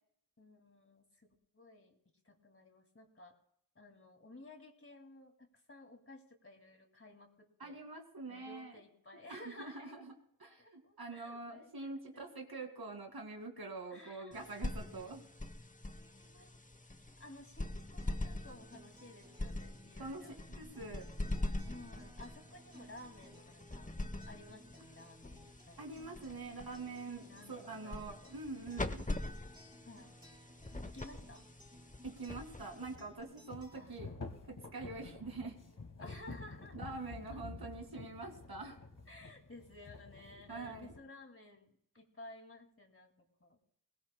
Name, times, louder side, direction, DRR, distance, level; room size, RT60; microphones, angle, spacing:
voice 1, 0.4-1.9 2.2-3.4 3.7-7.8 8.3-10.0 10.6-12.3 13.9-14.5 15.9-16.5 17.2-20.4 21.6-23.9 24.3-26.3 27.3-28.3 29.8-30.1 30.8-31.5 33.7-33.9 36.0-36.8 37.3-37.4 39.1-43.6, left 1 dB, 35° left, 3 dB, 2.4 m, -55 dB
voice 2, 7.6-8.8 9.3-10.1 10.4-15.3 20.0-20.2 20.6-21.1 25.8-29.0 32.0-34.1 34.5-35.6 36.7-38.8 40.5-40.9, right 3 dB, 90° right, 4 dB, 2.3 m, -45 dB
sound 1, 14.3-33.2, left 2 dB, 20° left, 0.9 m, -44 dB
Acoustic guitar, 18.0-34.0, equal, 10° right, 4.8 m, -60 dB
sound 2, 32.8-41.0, left 3 dB, 55° left, 1.8 m, -50 dB
21.0 x 19.0 x 2.2 m, 0.68 s
wide cardioid pair, 60°, 36 cm